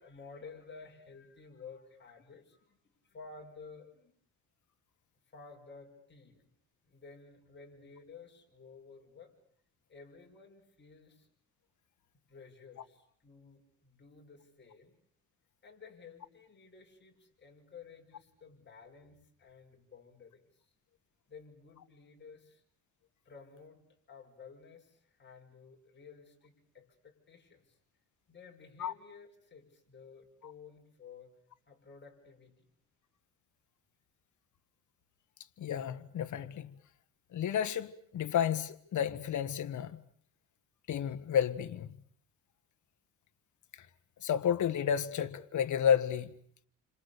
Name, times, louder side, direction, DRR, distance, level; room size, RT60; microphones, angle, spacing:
voice 1, 0.0-2.8 3.0-4.1 5.3-6.5 6.8-9.4 9.9-11.3 12.3-14.9 15.6-20.5 21.3-22.6 23.3-23.8 24.1-27.7 28.3-31.3 31.7-32.7, left 5 dB, 30° left, 5.3 m, -53 dB
voice 2, 35.6-36.7 37.3-40.0 40.9-42.0 43.8-43.9 44.2-46.3, left 8 dB, 55° left, 1.5 m, -31 dB
29.0 x 26.0 x 6.9 m
cardioid pair, 125°, 35 cm